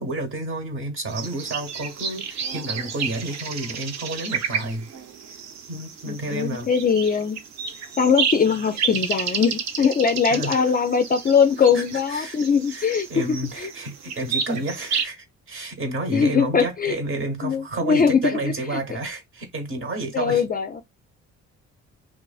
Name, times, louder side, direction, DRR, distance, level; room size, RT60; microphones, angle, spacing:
voice 1, 0.0-4.9 5.7-6.7 10.3-10.5 11.7-12.4 12.7-20.4, right 2 dB, 45° right, 1.0 m, -30 dB
sound 1, 1.1-15.1, right 6 dB, 65° right, 0.6 m, -31 dB
voice 2, 6.1-7.4 8.0-13.1 13.6-13.7 16.1-17.0 17.4-18.8 20.1-20.8, left 6 dB, 30° left, 0.4 m, -21 dB
2.4 x 2.4 x 2.3 m
cardioid pair, 90°, 30 cm